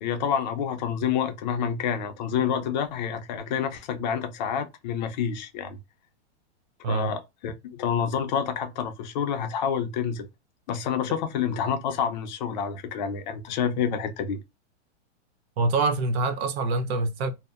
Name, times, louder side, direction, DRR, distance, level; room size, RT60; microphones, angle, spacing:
voice 1, 0.0-5.8 6.9-10.3 10.7-14.4, left 7 dB, 45° left, 0.5 m, -28 dB
voice 2, 15.6-17.3, right 3 dB, 65° right, 0.7 m, -25 dB
2.7 x 2.0 x 2.3 m
supercardioid pair, 150°, 34 cm